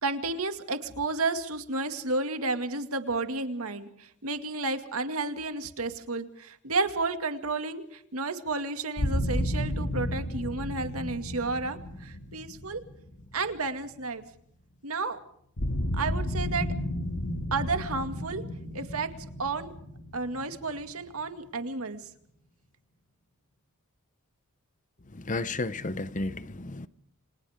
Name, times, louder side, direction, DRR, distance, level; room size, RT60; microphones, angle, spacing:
voice 1, 0.0-3.9 4.2-12.8 13.3-14.2 14.8-15.2 16.0-16.7 17.5-18.4 18.7-19.1 19.4-19.7 20.1-22.0, right 3 dB, 75° right, 2.3 m, -31 dB
sound 1, 9.0-13.9 15.6-21.2, left 1 dB, 80° left, 2.2 m, -33 dB
voice 2, 25.1-26.9, left 2 dB, 35° left, 0.8 m, -32 dB
29.5 x 26.0 x 3.7 m
head